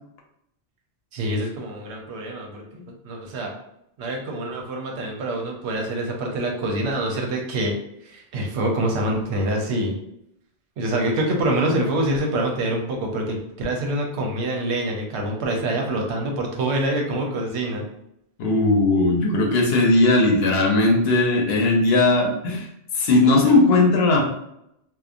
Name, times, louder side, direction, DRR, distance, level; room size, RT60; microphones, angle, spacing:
voice 1, 1.1-3.5 4.0-7.7 8.0-10.0 10.8-17.9, right 1 dB, 85° right, 1 dB, 0.9 m, -25 dB
voice 2, 18.4-22.7 22.9-24.2, left 2 dB, 70° left, 0 dB, 0.8 m, -18 dB
2.9 x 2.1 x 2.4 m, 0.79 s
omnidirectional pair, 1.1 m